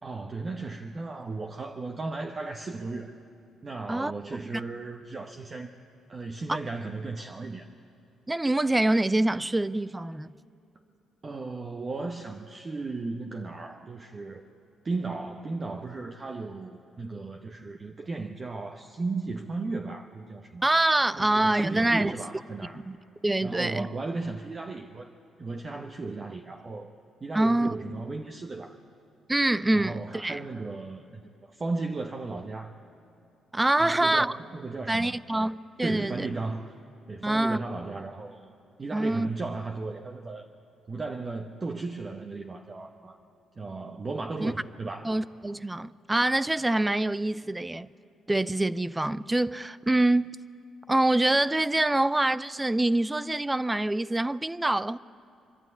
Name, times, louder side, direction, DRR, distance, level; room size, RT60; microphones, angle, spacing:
voice 1, 0.0-3.1 3.6-5.7 6.1-7.7 11.2-14.5 14.8-20.7 21.1-22.8 23.4-25.1 25.4-26.9 27.2-28.8 29.7-32.7 33.8-35.2 35.8-36.8 37.1-38.5 38.8-40.5 40.9-43.2 43.6-45.1, right 3 dB, 35° right, 1.0 m, -35 dB
voice 2, 3.9-4.4 6.5-6.6 8.3-10.3 20.6-22.1 22.7-23.0 23.2-23.9 27.3-27.7 29.3-30.4 33.5-34.3 34.9-36.3 37.2-37.6 38.9-39.3 44.4-44.5 45.0-47.9 48.3-50.3 50.9-55.0, right 2 dB, 15° right, 0.4 m, -25 dB
25.0 x 12.0 x 9.6 m
cardioid pair, 90°, 0 cm